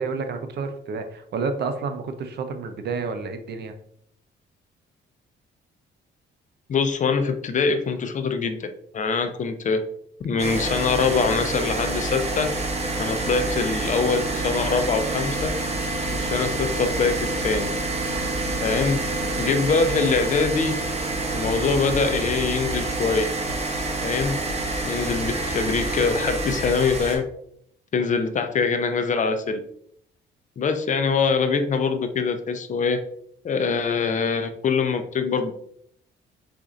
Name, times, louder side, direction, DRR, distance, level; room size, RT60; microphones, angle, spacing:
voice 1, 0.0-3.7, right 4 dB, 55° right, 8 dB, 0.5 m, -30 dB
voice 2, 6.7-8.7 8.9-9.8 10.2-12.5 13.0-15.5 16.1-17.2 17.4-17.7 18.6-19.0 19.4-20.8 21.3-23.3 24.0-24.4 24.8-27.2 27.9-29.6 30.6-33.0 33.4-35.5, left 5 dB, 40° left, 8 dB, 0.4 m, -23 dB
sound 1, 10.4-27.2, right 2 dB, 30° right, 0.8 m, -27 dB
4.0 x 2.5 x 2.4 m, 0.69 s
cardioid pair, 90°, 20 cm